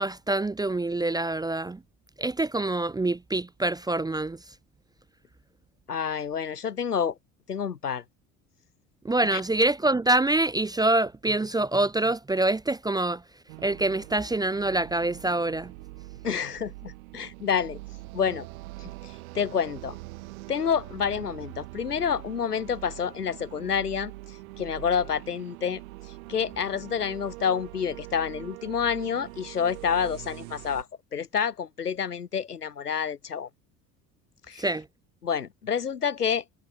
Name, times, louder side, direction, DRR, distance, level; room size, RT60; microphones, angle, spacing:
voice 1, 0.0-1.8 2.2-4.4 9.0-13.2 13.6-15.7 34.6-34.8, right 2 dB, 10° right, 0.7 m, -25 dB
voice 2, 5.9-7.1 7.5-8.0 9.3-9.4 16.2-17.8 18.1-18.5 18.8-20.0 20.5-24.1 24.6-25.8 26.3-30.9 31.1-33.5 34.5-34.7 35.2-36.4, left 7 dB, 80° left, 1.6 m, -28 dB
sound 1, 13.5-30.8, right 21 dB, 65° right, 6.2 m, -43 dB
figure-of-eight pair, 60°, 46 cm